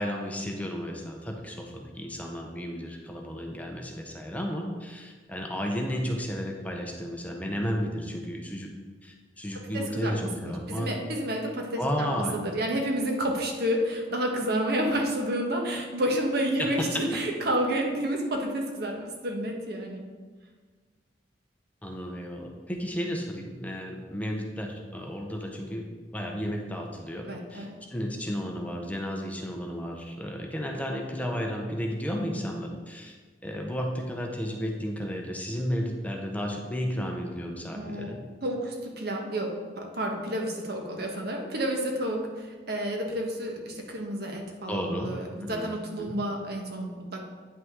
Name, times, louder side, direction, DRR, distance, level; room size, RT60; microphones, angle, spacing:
voice 1, 0.0-8.7 9.0-10.9 11.8-12.4 16.6-16.9 21.8-25.9 26.1-27.7 27.9-33.1 33.4-38.2 44.7-45.2 45.4-45.7 46.0-46.1, equal, 10° left, 1 dB, 0.7 m, -33 dB
voice 2, 9.7-11.8 12.1-20.1 27.3-27.7 37.7-38.2 38.4-47.2, right 1 dB, 60° right, 1 dB, 1.3 m, -30 dB
9.3 x 5.6 x 3.7 m, 1.4 s
head